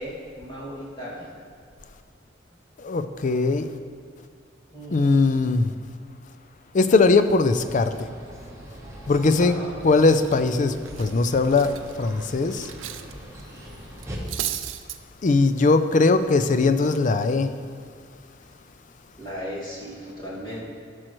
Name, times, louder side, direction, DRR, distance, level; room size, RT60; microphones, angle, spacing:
voice 1, 0.0-1.3 4.7-5.3 9.4-9.8 19.2-20.6, equal, 25° left, -6 dB, 2.2 m, -36 dB
voice 2, 2.8-3.7 4.9-5.7 6.7-8.1 9.1-9.6 9.8-12.7 15.2-17.5, left 3 dB, 40° left, 10 dB, 0.4 m, -20 dB
sound 1, 7.5-14.2, right 1 dB, 15° right, 1.1 m, -42 dB
Cutlery silverware, 9.6-9.7 10.0-13.1 13.4-13.6 14.0-15.0, right 12 dB, 85° right, 0.4 m, -35 dB
13.0 x 6.3 x 3.1 m, 2.2 s
head